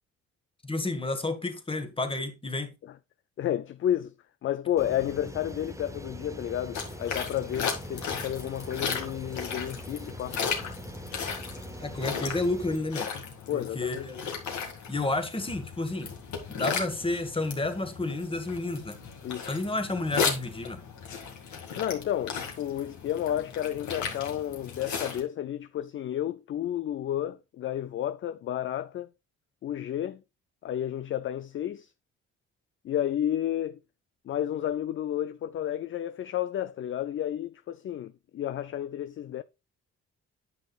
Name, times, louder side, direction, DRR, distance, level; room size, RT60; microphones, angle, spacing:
voice 1, 0.6-2.7 11.8-13.1 13.5-14.2 14.9-16.1 16.5-19.0 19.4-20.8, left 2 dB, 15° left, 1.5 m, -31 dB
voice 2, 3.4-4.1 4.4-10.4 13.5-14.1 19.2-19.5 21.7-29.1 29.6-30.2 30.6-31.9 32.8-33.8 34.3-39.4, left 11 dB, 45° left, 0.4 m, -31 dB
sound 1, 4.8-12.8, right 1 dB, 10° right, 0.7 m, -43 dB
sound 2, 6.7-25.2, left 6 dB, 70° left, 2.1 m, -36 dB
9.6 x 6.3 x 2.4 m
cardioid pair, 90°, 30 cm